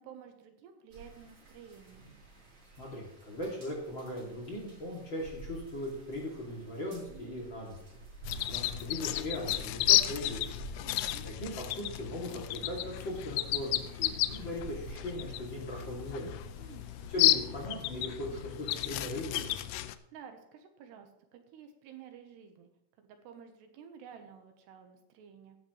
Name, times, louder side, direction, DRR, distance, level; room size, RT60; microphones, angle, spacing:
voice 1, 0.0-2.0 7.1-7.4 10.8-11.2 16.6-16.9 19.8-22.7 23.0-25.6, right 7 dB, 75° right, 6 dB, 3.1 m, -52 dB
sound 1, 0.9-18.0, right 3 dB, 35° right, 3.6 m, -51 dB
voice 2, 2.8-7.8 8.5-10.6 11.2-16.3 17.1-19.6, left 1 dB, 30° left, -2 dB, 2.7 m, -39 dB
sound 2, 8.3-20.0, left 15 dB, 80° left, 2.4 m, -32 dB
16.0 x 10.5 x 3.2 m, 0.86 s
omnidirectional pair, 5.1 m